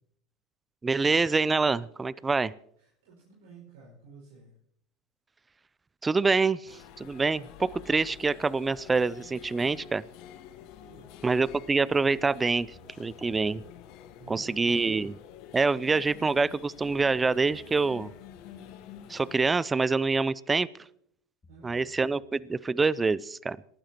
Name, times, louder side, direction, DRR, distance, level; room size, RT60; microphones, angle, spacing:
voice 1, 0.8-2.5 6.0-10.0 11.2-12.7 13.0-13.6 14.3-15.2 15.5-18.1 19.1-20.7 21.6-23.6, right 4 dB, 20° right, 21 dB, 0.5 m, -26 dB
voice 2, 2.8-4.5 10.8-11.4 14.2-14.9 21.5-21.9, right 4 dB, 75° right, -4 dB, 5.4 m, -52 dB
sound 1, 6.7-19.5, left 9 dB, 60° left, 1.2 m, -49 dB
sound 2, 12.7-14.3 17.5-18.6 21.4-22.8, right 1 dB, 20° left, 2.0 m, -61 dB
27.5 x 12.0 x 3.0 m, 0.70 s
hypercardioid pair, 95°, 0 cm